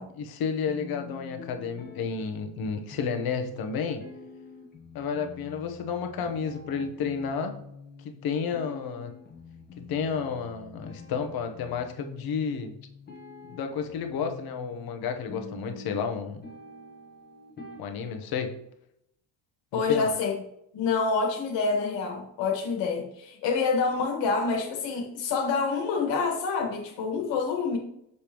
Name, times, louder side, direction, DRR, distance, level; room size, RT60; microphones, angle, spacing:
voice 1, 0.1-4.0 4.9-7.5 8.0-9.1 9.8-12.7 13.4-16.4 17.8-18.5 19.7-20.1, left 6 dB, 50° left, 5 dB, 1.0 m, -31 dB
sound 1, 0.7-18.7, left 4 dB, 20° left, 1.1 m, -46 dB
voice 2, 19.7-20.3 20.7-27.8, left 4 dB, 70° left, 3 dB, 1.7 m, -27 dB
6.7 x 5.2 x 3.0 m, 0.79 s
cardioid pair, 175°, 45 cm